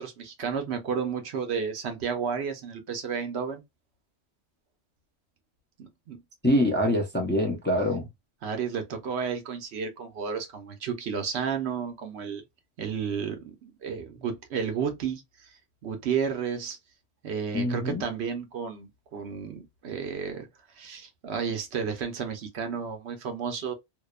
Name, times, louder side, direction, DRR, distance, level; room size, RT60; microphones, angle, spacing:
voice 1, 0.0-3.6 5.8-6.2 8.4-12.4 12.8-15.2 15.8-16.8 17.2-20.5 20.8-23.7, right 6 dB, 70° right, 1.0 m, -32 dB
voice 2, 6.4-8.1 17.5-18.0, left 1 dB, 15° left, 0.4 m, -25 dB
2.7 x 2.0 x 2.2 m
omnidirectional pair, 1.1 m